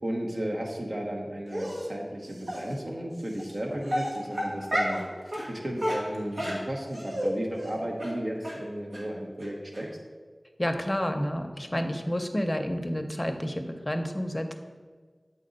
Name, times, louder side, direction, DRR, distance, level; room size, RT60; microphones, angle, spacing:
voice 1, 0.0-9.9, right 1 dB, 65° right, 0 dB, 1.0 m, -34 dB
Dog, 1.5-1.9 2.5-2.6 3.4-3.5 3.9-5.0 5.3-5.5 5.8-7.3 7.6-7.7 8.0-8.1 8.4-8.6 8.9-9.0 9.4-9.5 9.7-9.8, equal, 80° right, 1.3 m, -30 dB
voice 2, 10.6-14.5, equal, 25° left, 5 dB, 0.6 m, -30 dB
7.5 x 4.0 x 3.9 m, 1.5 s
wide cardioid pair, 45°, 0 cm